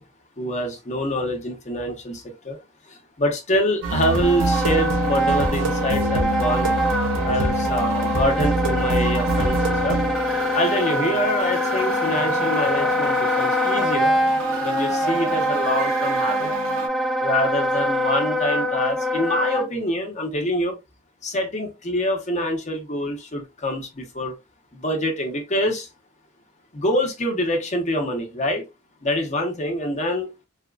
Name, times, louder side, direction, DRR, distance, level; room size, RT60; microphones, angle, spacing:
voice 1, 0.4-2.6 3.2-6.7 7.2-9.6 9.8-10.0 10.5-14.1 14.6-16.5 17.2-20.7 21.2-24.3 24.7-25.9 26.7-28.6 29.0-30.3, left 1 dB, 35° left, 0.9 m, -25 dB
sound 1, 3.8-16.9, right 3 dB, 90° right, 0.8 m, -26 dB
Wind instrument woodwind instrument, 4.2-19.7, left 1 dB, ahead, 0.4 m, -24 dB
4.2 x 2.3 x 2.4 m
head